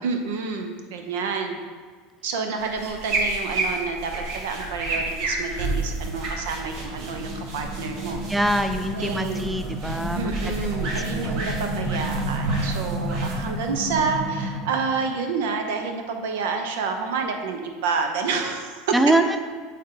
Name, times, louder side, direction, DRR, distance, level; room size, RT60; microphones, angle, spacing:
voice 1, 0.0-1.6 2.2-8.7 8.9-9.5 10.2-18.9, right 5 dB, 80° right, 5 dB, 0.8 m, -29 dB
sound 1, 2.6-14.5, right 2 dB, 60° right, 1.4 m, -31 dB
sound 2, 4.8-15.0, right 1 dB, 40° right, 1.0 m, -32 dB
voice 2, 8.3-10.3 11.1-11.4 18.9-19.4, right 1 dB, 5° right, 8 dB, 0.3 m, -23 dB
8.5 x 3.7 x 3.8 m, 1.5 s
supercardioid pair, 125°, 0 cm